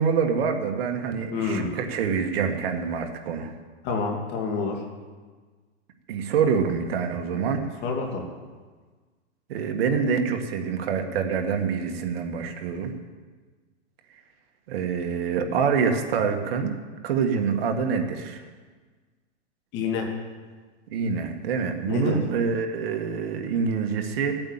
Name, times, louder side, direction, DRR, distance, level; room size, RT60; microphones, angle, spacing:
voice 1, 0.0-3.5 6.1-7.6 9.5-12.9 14.7-16.8 17.0-18.4 20.9-24.4, right 6 dB, 55° right, 5 dB, 1.8 m, -26 dB
voice 2, 1.3-1.7 3.8-4.8 7.8-8.3 19.7-20.1 21.9-22.2, left 4 dB, 30° left, 1 dB, 2.5 m, -27 dB
16.0 x 8.8 x 7.4 m, 1.4 s
hypercardioid pair, 155°, 36 cm